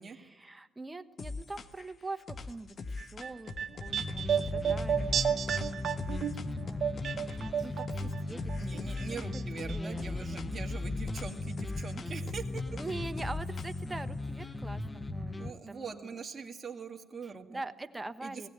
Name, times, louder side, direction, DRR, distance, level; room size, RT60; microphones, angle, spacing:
voice 1, 0.1-3.5 3.8-5.2 6.2-6.9 7.6-8.7 9.1-10.1 12.7-16.2 17.2-18.5, right 2 dB, 15° right, 10 dB, 1.1 m, -43 dB
sound 1, 1.2-1.9 2.3-7.5 7.9-9.3 9.6-14.0, left 3 dB, 50° left, 1.2 m, -41 dB
sound 2, 3.0-8.2 8.5-9.4 9.7-9.8, right 8 dB, 60° right, 1.0 m, -32 dB
sound 3, 3.9-15.5, left 2 dB, 20° left, 0.9 m, -38 dB
voice 2, 8.6-12.6 15.4-17.6 18.2-18.5, right 5 dB, 35° right, 3 dB, 2.0 m, -42 dB
19.5 x 16.0 x 8.9 m, 1.2 s
cardioid pair, 90°, 0 cm